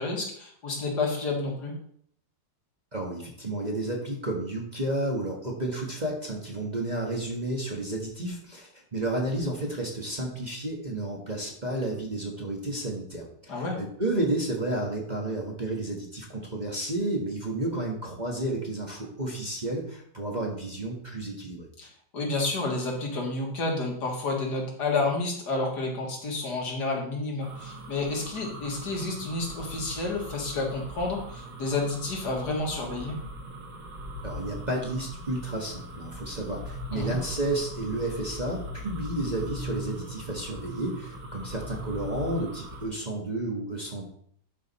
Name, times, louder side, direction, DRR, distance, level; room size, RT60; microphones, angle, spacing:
voice 1, 0.0-1.7 13.5-13.8 21.8-33.2 36.9-37.2, left 3 dB, 65° left, 0 dB, 2.3 m, -30 dB
voice 2, 2.9-21.7 34.2-44.1, right 1 dB, 25° right, -2 dB, 1.4 m, -31 dB
sound 1, 27.4-42.9, equal, 70° right, 2.1 m, -40 dB
11.5 x 5.0 x 4.2 m, 0.64 s
omnidirectional pair, 1.9 m